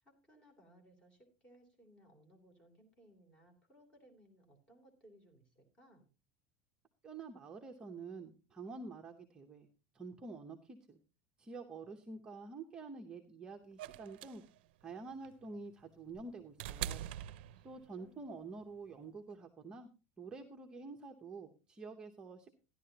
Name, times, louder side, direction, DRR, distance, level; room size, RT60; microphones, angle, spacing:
voice 1, 0.0-6.1 17.5-18.3, right 1 dB, 15° left, 3 dB, 3.0 m, -64 dB
voice 2, 7.0-9.7 9.9-11.0 11.4-14.4 14.8-17.0 17.6-19.9 20.2-22.5, right 4 dB, 15° right, 2 dB, 0.8 m, -48 dB
sound 1, 13.8-18.1 19.3-19.4, right 11 dB, 75° right, 0.5 m, -44 dB
14.0 x 11.0 x 2.8 m, 0.31 s
supercardioid pair, 170°, 6 cm